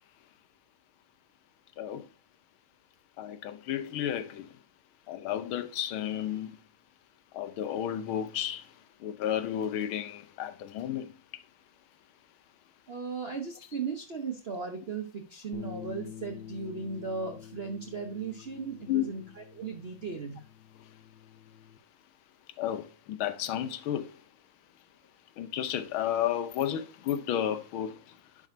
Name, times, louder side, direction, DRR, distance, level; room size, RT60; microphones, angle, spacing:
voice 1, 3.2-4.5 5.1-6.5 7.3-8.6 9.0-11.1 18.9-19.0 22.6-24.1 25.4-28.0, left 10 dB, 80° left, 1.6 m, -32 dB
voice 2, 12.9-20.4, right 5 dB, 55° right, 0.6 m, -37 dB
sound 1, 15.5-21.8, left 9 dB, 60° left, 1.4 m, -48 dB
11.0 x 5.0 x 2.6 m
omnidirectional pair, 2.3 m